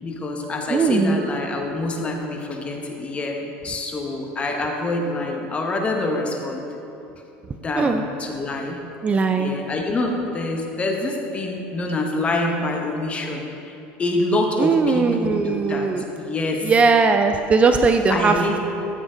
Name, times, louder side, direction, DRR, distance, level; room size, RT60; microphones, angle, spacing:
voice 1, 0.0-6.7 7.6-8.8 9.4-15.9 16.2-16.7 18.1-18.6, left 2 dB, 25° left, 1 dB, 1.4 m, -26 dB
voice 2, 0.7-1.2 7.8-8.0 9.0-9.5 14.6-16.0 16.6-18.4, right 4 dB, 25° right, 6 dB, 0.5 m, -19 dB
14.5 x 7.1 x 3.9 m, 2.8 s
supercardioid pair, 115°, 5 cm